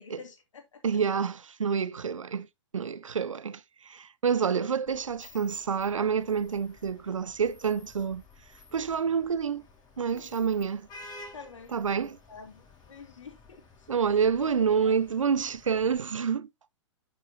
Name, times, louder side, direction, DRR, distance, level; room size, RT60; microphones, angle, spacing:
voice 1, 0.0-0.8 10.1-10.3 11.3-11.7 12.3-13.6 14.0-14.2 14.8-14.9, left 5 dB, 75° left, 2.5 m, -48 dB
voice 2, 0.8-2.5 2.7-8.2 8.7-9.6 10.0-10.9 11.7-12.2 13.9-16.5, right 6 dB, 85° right, 0.6 m, -28 dB
Vehicle horn car horn honking / Traffic noise roadway noise, 4.8-16.0, left 3 dB, 25° left, 4.0 m, -53 dB
11.0 x 5.5 x 2.7 m
hypercardioid pair, 115°, 16 cm